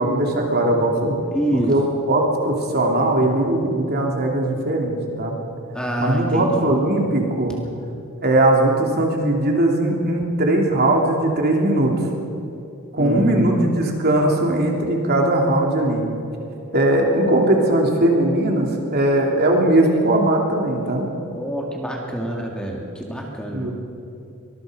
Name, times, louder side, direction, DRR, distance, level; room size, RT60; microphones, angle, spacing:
voice 1, 0.0-1.2 1.5-5.4 6.0-7.6 8.2-12.0 12.9-16.0 16.7-21.1 23.5-23.7, right 1 dB, 45° right, 0 dB, 3.2 m, -19 dB
voice 2, 1.3-1.7 5.7-6.7 13.0-13.7 21.3-23.7, right 1 dB, 5° left, 0 dB, 2.1 m, -26 dB
24.0 x 20.5 x 5.2 m, 2.8 s
head